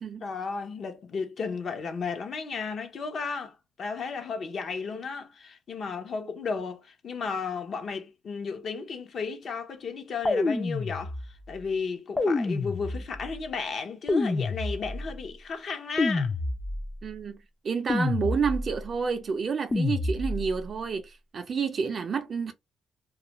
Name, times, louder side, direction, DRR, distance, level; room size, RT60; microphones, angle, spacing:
voice 1, 0.2-11.1 11.5-16.3, left 5 dB, 55° left, 0.7 m, -34 dB
sound 1, 10.2-11.5 12.2-13.3 14.1-15.2 16.0-17.0 17.9-18.8 19.7-20.6, left 3 dB, 25° left, 0.4 m, -28 dB
voice 2, 17.0-22.5, right 5 dB, 45° right, 0.4 m, -29 dB
2.3 x 2.1 x 2.9 m
cardioid pair, 90°, 0 cm